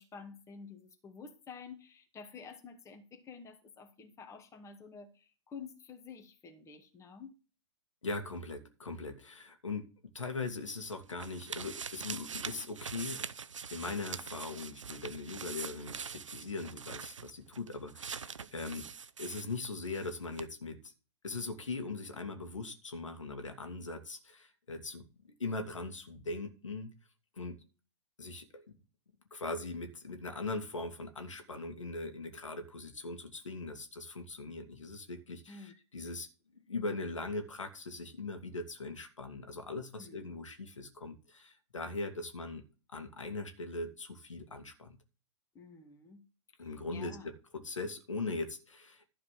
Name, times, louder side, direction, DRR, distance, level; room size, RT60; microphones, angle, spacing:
voice 1, 0.0-7.3 35.5-35.7 40.0-40.4 45.5-46.2 46.6-47.3, left 5 dB, 20° left, 4 dB, 2.1 m, -50 dB
voice 2, 8.0-13.2 13.7-18.9 19.2-20.9 21.2-26.9 27.3-27.6 28.2-28.6 29.3-36.3 36.5-42.6 42.9-45.0 46.6-49.0, left 3 dB, 90° left, 5 dB, 2.4 m, -40 dB
sound 1, 10.5-20.1 20.4-20.5, right 6 dB, 90° right, 0.7 m, -43 dB
12.0 x 5.0 x 6.7 m, 0.34 s
hypercardioid pair, 120°, 16 cm